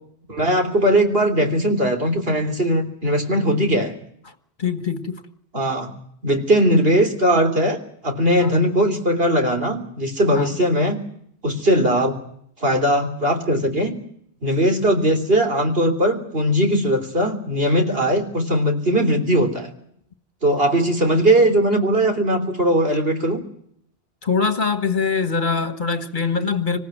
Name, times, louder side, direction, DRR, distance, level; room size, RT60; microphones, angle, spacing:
voice 1, 0.3-3.9 5.5-5.9 6.2-7.8 8.0-11.0 11.4-12.2 12.6-13.9 14.4-19.7 20.4-23.4, equal, 65° right, 3.7 m, -19 dB
voice 2, 4.6-5.2 8.4-8.5 10.3-10.6 24.2-26.8, left 5 dB, 50° left, 1.7 m, -23 dB
26.5 x 15.5 x 9.1 m
omnidirectional pair, 1.1 m